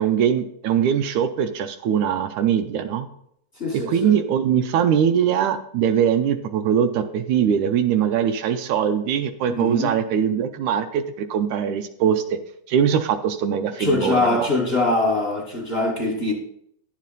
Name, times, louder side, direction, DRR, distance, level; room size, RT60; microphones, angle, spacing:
voice 1, 0.0-3.1 3.7-12.4 12.7-14.5, right 8 dB, 80° right, 1.9 m, -22 dB
voice 2, 3.6-4.2 9.5-9.9 13.8-16.3, left 2 dB, 45° left, 0.8 m, -23 dB
10.5 x 7.4 x 4.0 m
omnidirectional pair, 3.7 m